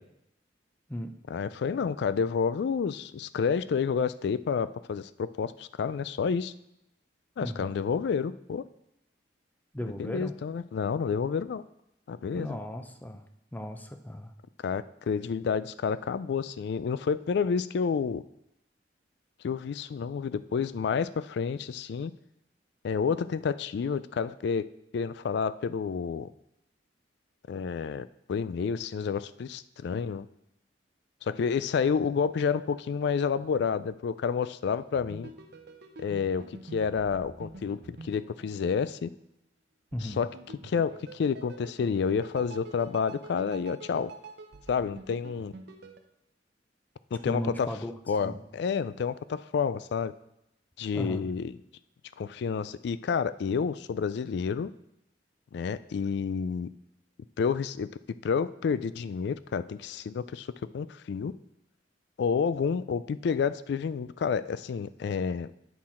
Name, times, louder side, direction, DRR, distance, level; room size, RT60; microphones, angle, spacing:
voice 1, 1.3-6.5 7.4-8.6 10.0-11.6 12.1-12.6 14.6-18.2 19.4-22.1 22.8-24.7 24.9-26.3 27.5-30.3 31.2-35.3 36.0-39.1 40.0-40.3 40.6-44.1 44.7-45.5 47.1-47.7 48.1-50.1 50.8-51.5 52.2-54.7 55.5-56.7 57.4-57.9 58.2-60.5 60.7-61.3 62.2-65.5, left 6 dB, 65° left, 16 dB, 0.3 m, -29 dB
voice 2, 7.4-7.8 9.7-10.4 12.3-14.3 39.9-40.2 47.3-47.9 48.2-48.4 50.9-51.3, equal, 10° left, 7 dB, 0.5 m, -36 dB
sound 1, 34.9-39.2 39.9-46.0, right 3 dB, 60° right, 0.7 m, -47 dB
8.6 x 5.7 x 4.3 m, 0.84 s
head